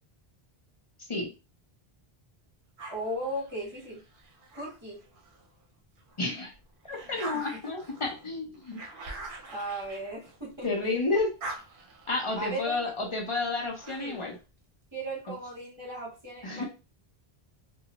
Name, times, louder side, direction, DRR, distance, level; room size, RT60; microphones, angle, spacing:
sound 1, 2.8-5.5 6.0-10.8 11.1-14.4, right 2 dB, 60° right, 0.8 m, -45 dB
voice 1, 2.9-4.0 4.5-5.0 7.1-7.2 7.5-7.6 9.5-10.9 12.4-12.8 14.0-14.2 14.9-16.6, right 1 dB, 25° right, -6 dB, 1.0 m, -37 dB
voice 2, 6.2-6.5 6.9-8.8 10.6-11.3 12.1-14.4 16.4-16.6, left 3 dB, 35° left, 1 dB, 0.6 m, -30 dB
2.6 x 2.2 x 2.9 m, 0.31 s
omnidirectional pair, 1.0 m